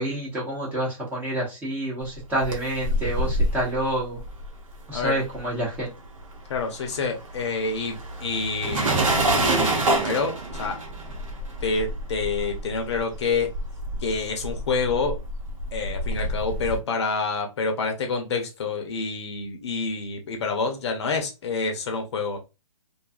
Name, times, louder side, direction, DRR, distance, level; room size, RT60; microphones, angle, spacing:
voice 1, 0.0-4.2 4.9-5.9, right 1 dB, 10° right, -5 dB, 0.8 m, -28 dB
sound 1, 2.1-5.8 6.1-16.8, right 1 dB, 70° right, 0.9 m, -28 dB
voice 2, 6.5-8.9 9.3-10.8 11.6-13.5 14.0-15.2 15.7-22.4, left 4 dB, 50° left, 4 dB, 0.7 m, -28 dB
2.6 x 2.3 x 2.4 m, 0.26 s
hypercardioid pair, 145°, 18 cm